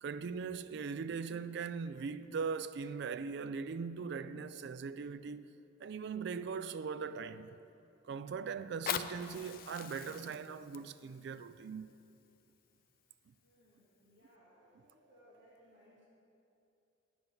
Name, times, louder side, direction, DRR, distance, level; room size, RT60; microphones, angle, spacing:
voice 1, 0.0-5.5 5.8-7.6 8.1-11.9, right 5 dB, 60° right, 0.3 m, -40 dB
Fire, 8.6-13.6 14.2-14.3, left 9 dB, 50° left, 0.4 m, -44 dB
voice 2, 13.4-16.0, equal, 80° right, 2.3 m, -64 dB
9.4 x 8.7 x 5.4 m
head